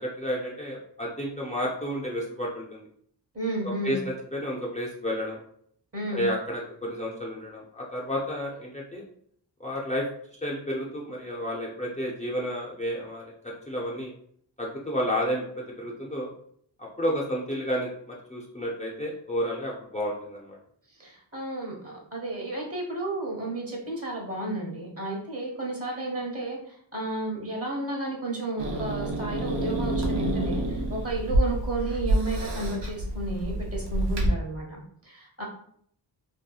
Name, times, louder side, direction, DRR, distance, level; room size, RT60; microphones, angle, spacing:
voice 1, 0.0-2.9 3.6-5.4 6.1-9.0 9.6-10.1 10.4-14.1 14.6-15.4 15.8-16.3 16.8-20.6, equal, 15° left, -3 dB, 0.5 m, -31 dB
voice 2, 3.3-4.0 5.9-6.3 21.0-35.4, right 2 dB, 35° right, -1 dB, 1.0 m, -32 dB
Growling / Hiss, 28.6-34.3, right 1 dB, 70° right, 0.7 m, -28 dB
2.7 x 2.2 x 2.3 m, 0.65 s
cardioid pair, 60°, 43 cm